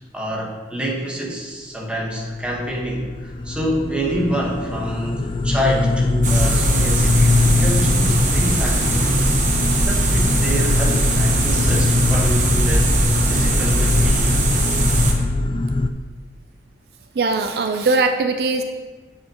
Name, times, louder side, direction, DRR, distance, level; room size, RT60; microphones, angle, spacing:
voice 1, 0.1-9.3 9.8-14.4, equal, 5° right, -3 dB, 1.2 m, -27 dB
sound 1, 2.3-15.9, left 3 dB, 30° left, 0.3 m, -21 dB
sound 2, 6.2-15.1, right 2 dB, 45° right, 1.0 m, -20 dB
voice 2, 17.2-18.6, right 3 dB, 60° right, 6 dB, 0.4 m, -20 dB
8.4 x 7.2 x 2.9 m, 1.4 s
head